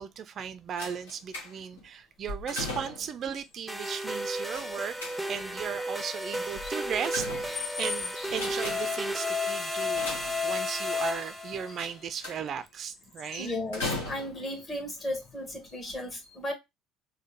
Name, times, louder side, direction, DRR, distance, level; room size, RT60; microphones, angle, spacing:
voice 1, 0.0-5.0 5.3-13.5, right 8 dB, 45° right, 0.3 m, -36 dB
sound 1, 0.8-1.8 2.2-3.2 4.5-5.5 6.6-7.8 8.2-9.0 9.8-10.8 11.8-12.6 13.7-14.6 15.4-15.5 15.9-16.0, left 2 dB, 80° left, 1.2 m, -38 dB
sound 2, 3.0-9.3 9.7-10.3 11.0-12.4 12.9-13.6, left 5 dB, 50° left, 0.8 m, -44 dB
sound 3, 3.7-11.8, left 2 dB, ahead, 0.6 m, -33 dB
voice 2, 13.4-16.5, left 1 dB, 35° left, 1.5 m, -35 dB
4.2 x 2.1 x 3.0 m
hypercardioid pair, 60°, 0 cm